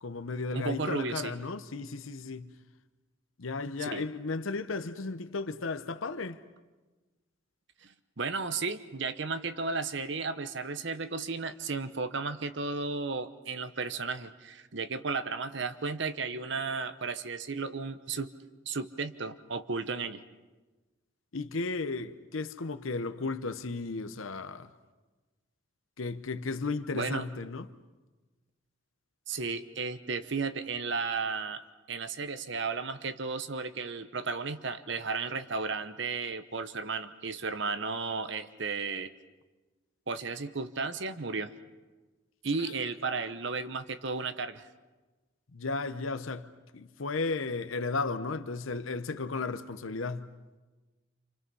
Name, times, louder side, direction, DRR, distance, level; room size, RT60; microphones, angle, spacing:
voice 1, 0.0-2.5 3.4-6.4 21.3-24.7 26.0-27.7 42.6-42.7 45.5-50.3, left 3 dB, 80° left, 0.9 m, -34 dB
voice 2, 0.5-1.3 3.8-4.0 7.8-18.3 18.7-20.2 26.9-27.2 29.3-39.1 40.1-41.5 42.4-44.7, right 4 dB, 60° right, 1.0 m, -34 dB
29.0 x 27.0 x 5.5 m
head